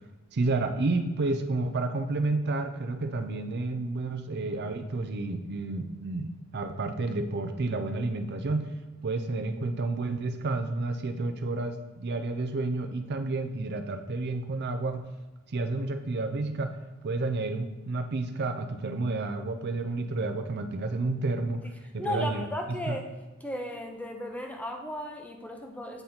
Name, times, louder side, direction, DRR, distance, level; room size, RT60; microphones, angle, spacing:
voice 1, 0.3-8.7 9.0-15.0 15.5-16.8 17.0-21.6 21.9-22.4 22.9-23.0, right 3 dB, 50° right, 7 dB, 0.5 m, -30 dB
voice 2, 22.0-23.0 23.4-26.0, equal, 5° left, 3 dB, 0.6 m, -35 dB
8.0 x 4.0 x 4.2 m, 1.2 s
head